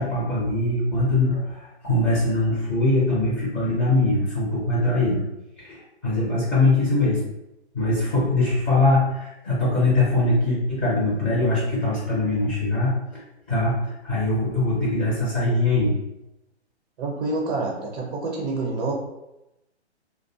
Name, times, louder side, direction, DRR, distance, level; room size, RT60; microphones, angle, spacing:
voice 1, 0.0-5.2 5.6-7.2 7.7-13.2 13.5-15.9, left 2 dB, 15° left, -8 dB, 0.5 m, -22 dB
voice 2, 17.0-18.9, right 3 dB, 40° right, -2 dB, 0.6 m, -27 dB
2.4 x 2.2 x 2.6 m, 0.91 s
figure-of-eight pair, 125°, 34 cm